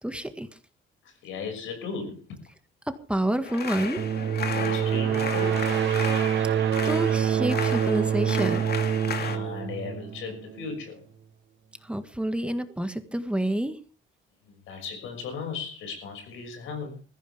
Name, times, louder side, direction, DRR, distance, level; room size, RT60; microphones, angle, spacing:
voice 1, 0.0-0.5 2.9-4.0 6.8-8.6 11.8-13.8, right 1 dB, 5° right, 8 dB, 1.7 m, -28 dB
voice 2, 1.0-2.4 4.5-5.7 9.2-11.1 14.4-17.0, left 5 dB, 85° left, 5 dB, 6.3 m, -36 dB
sound 1, 3.4-9.4, left 6 dB, 55° left, 2.6 m, -34 dB
sound 2, 4.0-10.6, right 9 dB, 70° right, 1.2 m, -26 dB
20.0 x 15.0 x 3.5 m, 0.36 s
cardioid pair, 90°, 20 cm